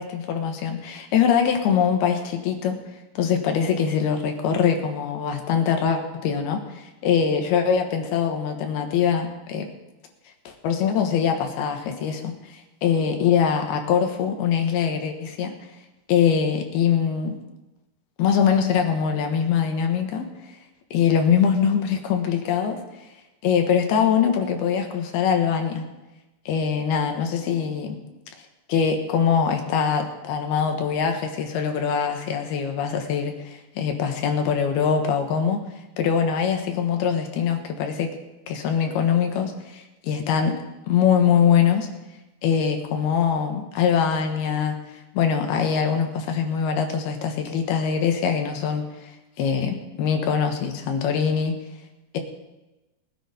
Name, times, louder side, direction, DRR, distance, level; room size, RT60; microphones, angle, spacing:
voice 1, 0.0-2.8 3.2-9.7 10.5-12.3 12.8-15.5 16.1-17.4 18.2-20.3 20.9-22.8 23.4-25.8 26.5-28.0 28.7-35.6 36.0-38.1 38.5-40.6 40.9-41.9 42.4-44.8 45.1-51.6 52.1-52.2, left 7 dB, 70° left, 4 dB, 2.9 m, -23 dB
20.0 x 10.0 x 4.2 m, 1.0 s
omnidirectional pair, 5.2 m